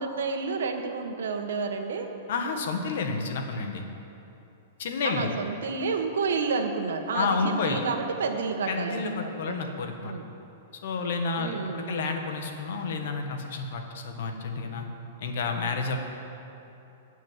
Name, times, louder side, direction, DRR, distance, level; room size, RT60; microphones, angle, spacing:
voice 1, 0.0-2.1 5.0-9.8 10.0-10.3 11.4-12.1, right 4 dB, 85° right, 4 dB, 1.5 m, -30 dB
voice 2, 2.3-3.8 4.8-5.3 7.1-7.8 8.7-10.1 10.8-14.9 15.2-16.0, left 4 dB, 55° left, 4 dB, 1.4 m, -30 dB
18.5 x 6.4 x 7.5 m, 2.8 s
supercardioid pair, 175°, 0 cm